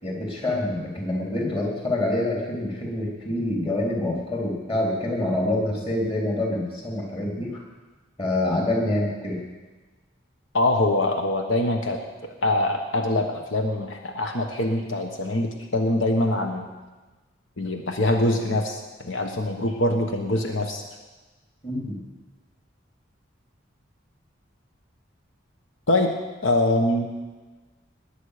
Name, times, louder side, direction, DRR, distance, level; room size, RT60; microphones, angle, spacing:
voice 1, 0.0-7.5 8.2-9.4 21.6-22.0, left 1 dB, 30° left, -1 dB, 3.4 m, -26 dB
voice 2, 10.5-16.7 17.6-20.8 25.9-26.1 26.4-27.1, left 1 dB, 80° left, 4 dB, 1.2 m, -24 dB
20.0 x 8.4 x 6.6 m, 1.3 s
head